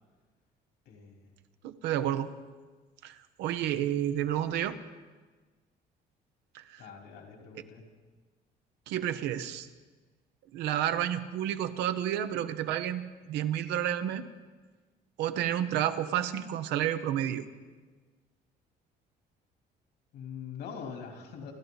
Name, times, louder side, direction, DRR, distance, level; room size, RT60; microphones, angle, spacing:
voice 1, 0.9-1.3 6.8-7.9 20.1-21.5, left 6 dB, 80° left, 2 dB, 3.6 m, -43 dB
voice 2, 1.6-2.3 3.0-4.8 6.5-6.8 8.9-9.7 10.5-14.3 15.2-17.5, right 11 dB, 90° right, 10 dB, 0.9 m, -30 dB
28.0 x 12.5 x 4.1 m, 1.4 s
cardioid pair, 110°, 17 cm